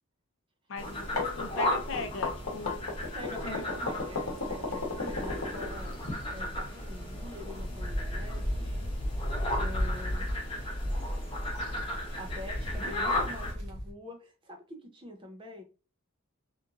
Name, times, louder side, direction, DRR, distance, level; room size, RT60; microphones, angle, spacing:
voice 1, 0.7-3.1 3.4-3.6, left 3 dB, 60° left, 7 dB, 0.4 m, -39 dB
sound 1, 0.8-13.5, left 1 dB, 25° left, 0.7 m, -36 dB
sound 2, 0.9-6.1, left 3 dB, 90° left, 0.8 m, -34 dB
voice 2, 3.1-8.9 9.6-10.3 12.2-15.6, left 1 dB, 20° right, 4 dB, 0.4 m, -45 dB
sound 3, 5.1-13.9, equal, 55° right, 0.9 m, -35 dB
2.9 x 2.5 x 2.4 m, 0.33 s
head